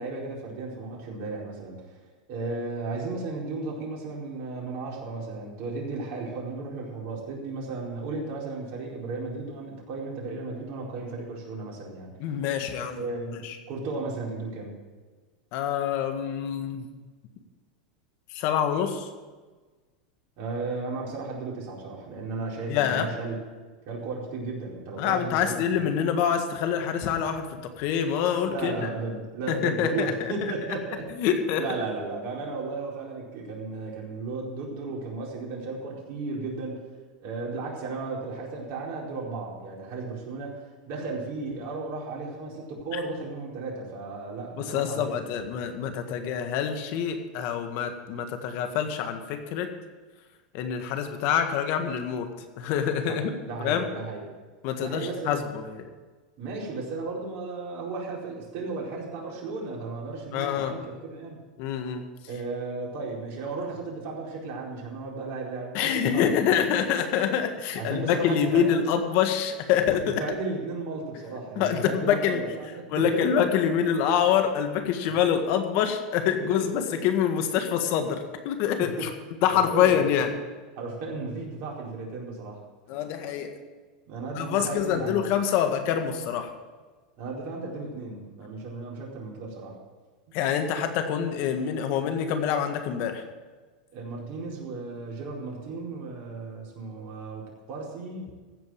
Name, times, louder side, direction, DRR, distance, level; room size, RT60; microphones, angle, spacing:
voice 1, 0.0-1.8 2.3-12.1 13.0-14.8 20.4-23.4 23.9-25.9 28.5-31.1 31.6-36.8 37.2-45.2 53.0-53.2 53.4-54.3 54.8-55.4 56.4-61.4 62.3-66.6 67.7-68.7 69.9-73.4 76.4-77.1 78.8-79.1 79.5-80.1 80.8-82.6 84.0-85.3 87.2-89.8 90.3-90.4 93.9-98.3, right 3 dB, 50° right, -3 dB, 4.5 m, -35 dB
voice 2, 12.2-13.0 13.4-13.6 15.5-16.9 18.3-19.1 22.7-23.1 25.0-28.9 29.5-30.3 31.2-31.6 42.9-43.0 44.6-49.7 50.5-52.3 52.6-53.3 53.6-53.9 54.6-55.9 60.3-60.7 61.6-62.0 65.7-70.2 71.6-72.4 72.9-79.1 79.4-80.3 82.9-83.5 84.4-86.5 90.3-93.2, left 8 dB, 55° left, 6 dB, 1.7 m, -26 dB
15.5 x 5.4 x 9.1 m, 1.3 s
hypercardioid pair, 120°, 5 cm